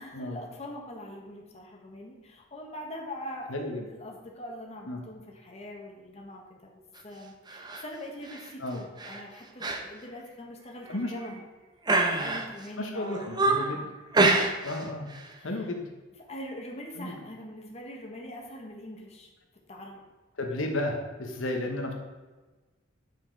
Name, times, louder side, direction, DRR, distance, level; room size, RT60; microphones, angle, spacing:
voice 1, 0.0-11.4 12.1-13.4 13.7-13.9 15.4-15.7 16.2-19.3 19.7-20.0, left 1 dB, 35° left, -1 dB, 1.2 m, -43 dB
voice 2, 3.5-3.8 4.9-5.0 8.6-8.8 10.9-11.3 12.8-13.9 14.6-15.1 15.4-15.9 17.0-17.1 20.4-21.9, left 1 dB, 80° left, 2 dB, 1.0 m, -33 dB
sound 1, 7.5-7.8 8.2-8.5 9.0-9.2 9.6-9.8 10.1-10.2 10.9-11.4 11.8-12.7 13.1-13.8 14.1-14.8 15.1-15.3, right 2 dB, 20° right, 0.7 m, -26 dB
8.1 x 4.6 x 4.4 m, 1.2 s
head